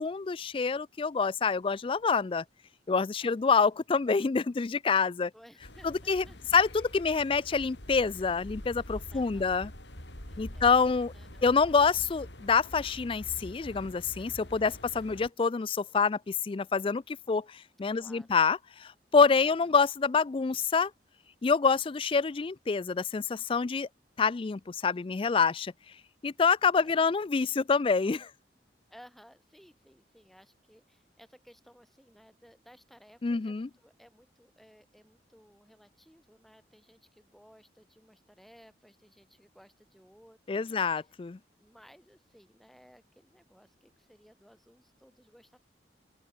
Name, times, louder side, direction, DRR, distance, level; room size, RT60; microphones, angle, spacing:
voice 1, 0.0-2.4 2.9-5.3 5.8-6.2 6.5-9.7 10.4-11.1 11.4-20.9 21.4-23.9 24.2-25.7 26.2-28.3 33.2-33.7 40.5-41.4, left 5 dB, 30° left, 0.4 m, -27 dB
voice 2, 3.2-3.7 5.3-6.4 9.1-9.6 10.3-11.6 17.9-18.4 19.4-19.8 24.9-25.3 26.8-27.1 28.9-41.1 41.5-45.6, equal, ahead, 6.1 m, -59 dB
sound 1, 5.6-15.3, left 1 dB, 75° left, 6.8 m, -45 dB
open air
head